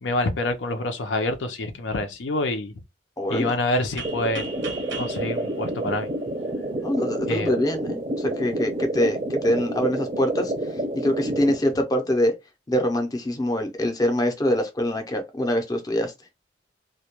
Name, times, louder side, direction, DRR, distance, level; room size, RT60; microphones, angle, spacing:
voice 1, 0.0-2.7 3.3-4.5 5.0-6.1 7.3-7.5, left 2 dB, 85° left, 0.5 m, -26 dB
voice 2, 3.2-3.5 6.8-12.3 12.7-16.1, left 1 dB, 20° left, 0.5 m, -24 dB
sound 1, 4.0-11.6, right 1 dB, 30° right, 0.5 m, -29 dB
sound 2, 4.0-6.7, right 4 dB, 90° right, 0.6 m, -39 dB
2.2 x 2.1 x 2.9 m
head